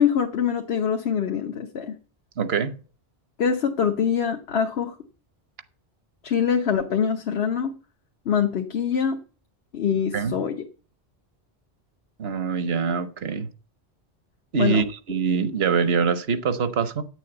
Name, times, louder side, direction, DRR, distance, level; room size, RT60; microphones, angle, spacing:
voice 1, 0.0-2.0 3.4-5.0 6.2-7.8 8.3-9.2 9.7-10.6 14.6-14.9, left 7 dB, 75° left, 1.2 m, -24 dB
voice 2, 2.4-2.7 10.1-10.4 12.2-13.5 14.5-17.0, right 5 dB, 75° right, 1.2 m, -24 dB
9.4 x 6.9 x 7.9 m
omnidirectional pair, 1.1 m